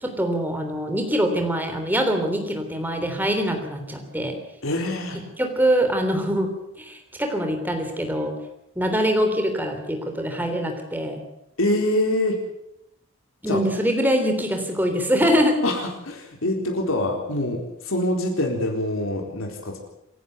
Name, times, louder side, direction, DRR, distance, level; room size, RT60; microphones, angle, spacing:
voice 1, 0.0-4.4 5.4-6.5 6.8-8.4 8.7-11.2 13.4-15.6, equal, 10° right, 4 dB, 3.4 m, -23 dB
voice 2, 4.6-5.2 11.6-12.4 13.5-13.6 15.6-19.8, left 1 dB, 80° left, 2 dB, 4.1 m, -25 dB
27.5 x 11.5 x 9.2 m, 0.81 s
head